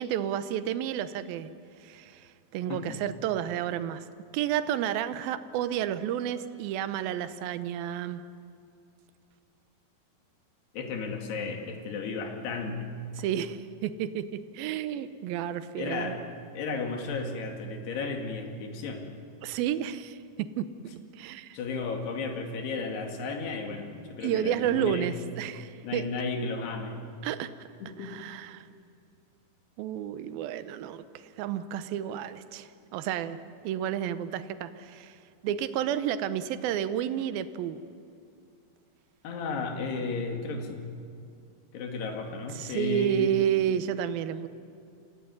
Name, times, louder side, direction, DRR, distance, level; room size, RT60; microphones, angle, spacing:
voice 1, 0.0-1.5 1.8-4.0 4.3-8.2 13.2-16.2 19.4-21.6 24.2-26.1 27.2-27.7 28.0-28.7 29.8-33.4 33.6-35.2 35.4-37.8 42.5-44.5, right 10 dB, 75° right, 12 dB, 2.5 m, -31 dB
voice 2, 10.7-12.8 15.7-16.2 16.6-19.0 21.5-25.1 25.8-27.0 27.8-28.1 39.2-40.8 41.7-43.5, left 4 dB, 85° left, 3 dB, 4.3 m, -34 dB
27.0 x 16.5 x 9.7 m, 2.5 s
omnidirectional pair, 4.6 m